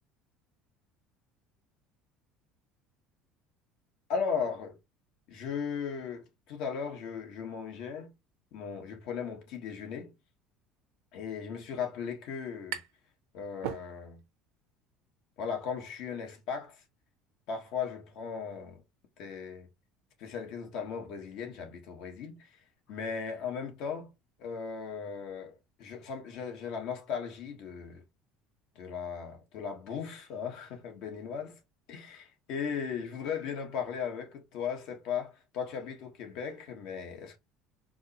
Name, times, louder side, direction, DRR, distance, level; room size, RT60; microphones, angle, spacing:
voice 1, 4.1-4.8 5.3-8.1 8.5-10.1 11.1-12.8 13.3-14.2 15.4-16.8 17.5-18.8 19.2-19.7 20.2-22.5 22.9-24.1 24.4-28.0 28.7-31.6 31.9-37.4, left 6 dB, 65° left, 1.2 m, -37 dB
sound 1, 12.2-13.1 13.4-14.4, right 10 dB, 85° right, 0.6 m, -40 dB
4.6 x 2.0 x 2.8 m
cardioid pair, 140°, 0 cm